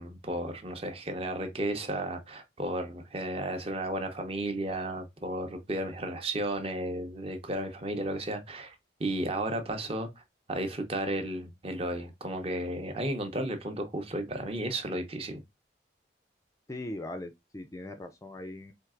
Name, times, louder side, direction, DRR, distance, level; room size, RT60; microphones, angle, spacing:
voice 1, 0.0-8.7 9.0-10.2 10.5-15.4, right 1 dB, 35° right, 0.7 m, -33 dB
voice 2, 16.7-18.7, left 1 dB, 20° left, 0.4 m, -40 dB
4.5 x 2.8 x 2.4 m
head